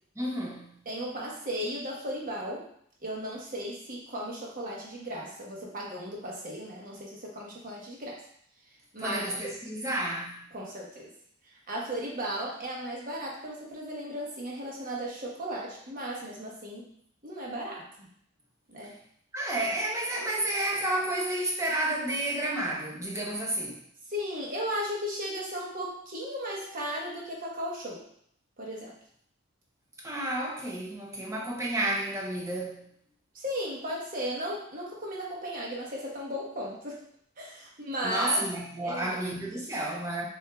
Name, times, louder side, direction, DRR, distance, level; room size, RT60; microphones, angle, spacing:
voice 1, 0.2-0.7 9.0-10.4 19.3-23.8 30.0-32.8 38.0-40.3, right 1 dB, 15° right, -2 dB, 0.7 m, -31 dB
voice 2, 0.9-2.6 3.0-8.2 8.9-9.2 10.5-11.1 11.7-16.9 17.2-18.1 18.7-18.9 24.1-28.0 28.6-28.9 33.3-37.0 37.4-38.5 38.8-39.2, equal, 40° right, -3 dB, 1.1 m, -35 dB
6.5 x 2.8 x 2.3 m, 0.66 s
head